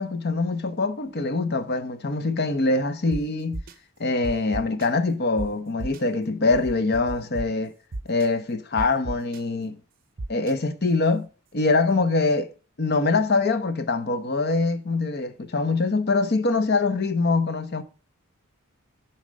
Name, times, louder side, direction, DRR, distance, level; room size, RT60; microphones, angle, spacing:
voice 1, 0.0-3.6 4.0-7.7 8.1-9.8 10.3-11.3 11.5-12.5 12.8-17.8, left 3 dB, 50° left, 0.8 m, -24 dB
sound 1, 3.1-3.2 3.5-3.7 4.2-4.9 5.4-5.5 5.8-6.0 6.5-7.4 7.9-8.3 8.8-9.4 10.2-10.5, right 2 dB, 40° right, 0.6 m, -33 dB
11.0 x 4.3 x 5.1 m
head